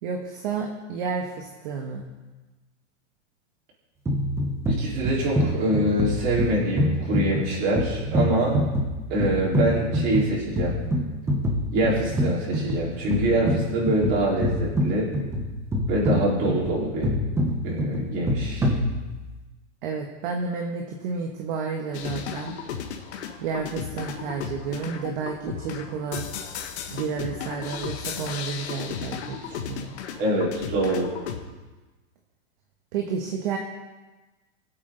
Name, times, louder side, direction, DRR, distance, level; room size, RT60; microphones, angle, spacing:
voice 1, 0.0-2.1 19.8-22.6 23.4-26.3 26.9-29.9 32.9-33.6, right 5 dB, 45° right, 2 dB, 1.4 m, -31 dB
sound 1, 4.0-19.4, equal, 5° right, 1.0 m, -26 dB
voice 2, 4.7-8.6 9.1-10.8 11.7-15.1 15.9-17.1 17.6-18.7 30.2-31.1, right 1 dB, 30° right, -5 dB, 4.1 m, -25 dB
sound 2, 21.9-31.4, left 7 dB, 60° left, 1.7 m, -35 dB
22.0 x 8.4 x 3.9 m, 1.2 s
supercardioid pair, 165°, 37 cm